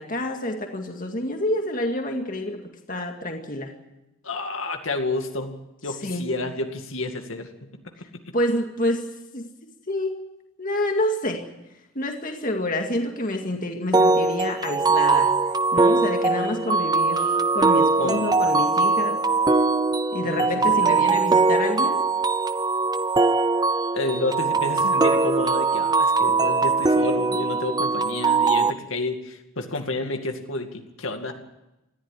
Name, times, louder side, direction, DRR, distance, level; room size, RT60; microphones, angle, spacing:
voice 1, 0.0-3.7 6.0-6.3 8.3-9.1 9.3-9.5 9.9-10.2 10.6-11.4 12.0-15.3 15.7-19.2 20.1-22.0, left 1 dB, 40° left, 3 dB, 2.1 m, -28 dB
voice 2, 4.2-5.6 5.8-7.5 18.0-18.4 20.2-20.5 23.9-31.3, left 2 dB, 70° left, 4 dB, 2.3 m, -30 dB
sound 1, 13.9-28.7, right 3 dB, 20° right, 0.6 m, -21 dB
20.0 x 14.5 x 9.8 m, 0.94 s
head